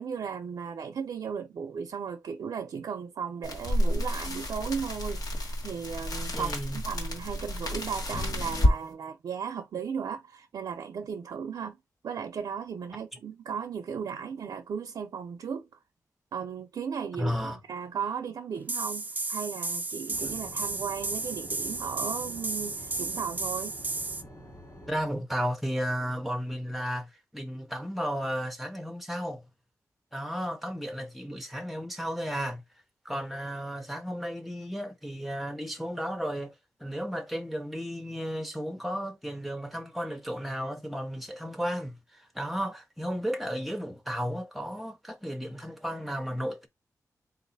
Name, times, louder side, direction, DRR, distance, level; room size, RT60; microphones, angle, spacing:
voice 1, 0.0-11.8 12.0-15.7 16.3-23.7, right 7 dB, 80° right, 0.5 m, -36 dB
sound 1, 3.4-8.8, left 1 dB, 75° left, 1.3 m, -29 dB
voice 2, 6.3-6.8 17.2-17.6 20.2-20.3 24.9-29.4 30.1-32.6 33.0-36.5 36.8-46.7, equal, ahead, 0.7 m, -33 dB
sound 2, 18.7-24.2, right 3 dB, 25° right, 0.4 m, -33 dB
sound 3, 20.1-25.1, equal, 45° left, 2.6 m, -48 dB
4.0 x 2.5 x 4.0 m
wide cardioid pair, 165°, 6 cm